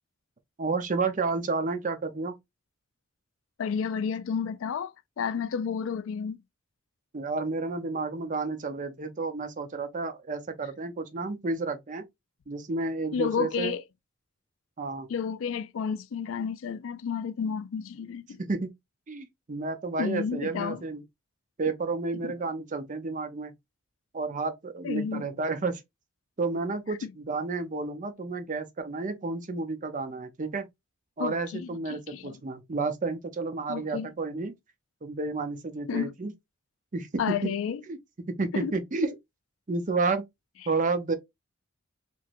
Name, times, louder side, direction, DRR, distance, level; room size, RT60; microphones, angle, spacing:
voice 1, 0.6-2.4 7.1-12.1 12.5-13.7 14.8-15.1 18.4-18.7 19.1-21.0 21.6-23.5 24.1-25.8 26.4-30.7 31.2-34.5 35.0-36.3 36.9-37.5 37.9-38.0 38.3-39.2 39.7-40.3 40.7-41.1, right 3 dB, 40° right, 0.6 m, -31 dB
voice 2, 3.6-6.4 13.1-13.8 15.1-18.4 20.0-20.8 22.2-22.3 24.8-25.3 27.0-27.1 31.2-32.4 33.7-34.1 35.9-36.1 37.2-37.8 38.5-38.7, left 6 dB, 70° left, 0.4 m, -31 dB
3.0 x 2.5 x 2.5 m
head